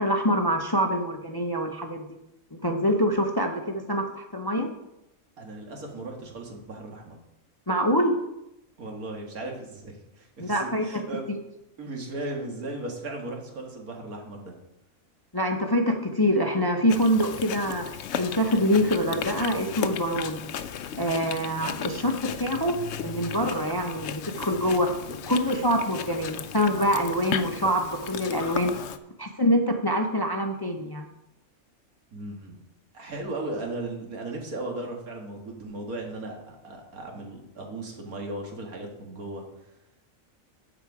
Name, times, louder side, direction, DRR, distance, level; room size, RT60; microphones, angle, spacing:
voice 1, 0.0-2.2 2.6-4.7 7.7-8.2 10.4-11.0 11.3-11.4 15.3-17.9 18.1-20.4 20.9-24.9 25.3-28.7 29.2-31.1, equal, 25° left, 3 dB, 0.6 m, -25 dB
voice 2, 5.4-7.2 8.8-11.4 11.8-14.5 32.1-32.6 32.9-39.4, right 2 dB, 85° right, 1 dB, 2.2 m, -36 dB
Chewing mastication, 16.9-29.0, left 8 dB, 65° left, 0.8 m, -35 dB
14.5 x 5.0 x 4.8 m, 0.87 s
omnidirectional pair, 1.5 m